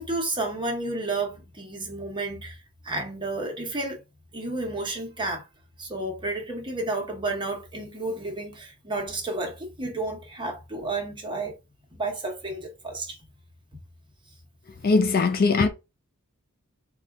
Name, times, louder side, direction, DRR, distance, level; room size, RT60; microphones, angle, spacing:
voice 1, 0.0-2.6 2.8-4.0 4.3-5.5 5.8-11.6 11.9-13.2, right 2 dB, 20° right, 1.1 m, -31 dB
voice 2, 14.8-15.7, left 4 dB, 45° left, 0.5 m, -20 dB
4.1 x 2.4 x 3.5 m
head